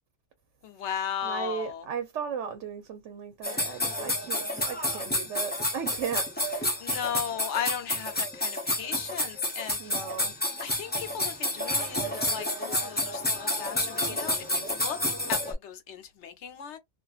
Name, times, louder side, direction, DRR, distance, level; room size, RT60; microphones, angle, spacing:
voice 1, 0.6-1.9 6.8-10.0 10.6-15.0 15.3-16.8, left 8 dB, 75° left, 0.9 m, -36 dB
voice 2, 1.2-6.8 9.8-10.3, right 7 dB, 90° right, 0.9 m, -36 dB
sound 1, 3.4-15.5, left 1 dB, 15° left, 0.4 m, -30 dB
2.5 x 2.4 x 2.3 m
omnidirectional pair, 1.2 m